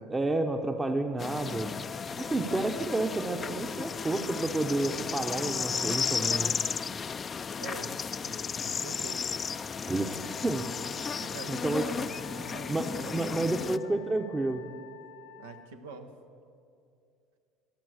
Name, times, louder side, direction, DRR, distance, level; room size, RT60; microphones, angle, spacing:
voice 1, 0.1-1.7 2.2-6.5 9.9-10.7 11.5-11.8 12.7-12.8 13.1-14.6, right 2 dB, 20° right, 6 dB, 0.9 m, -30 dB
sound 1, 1.2-13.8, left 6 dB, 35° left, 0.4 m, -34 dB
voice 2, 2.1-2.7 7.6-8.4 8.6-9.3 11.2-14.1 15.4-16.1, right 4 dB, 85° right, 5 dB, 1.1 m, -45 dB
Wind instrument woodwind instrument, 10.2-15.7, left 10 dB, 80° left, 0.7 m, -50 dB
22.5 x 7.8 x 6.4 m, 2.4 s
hypercardioid pair, 75°, 0 cm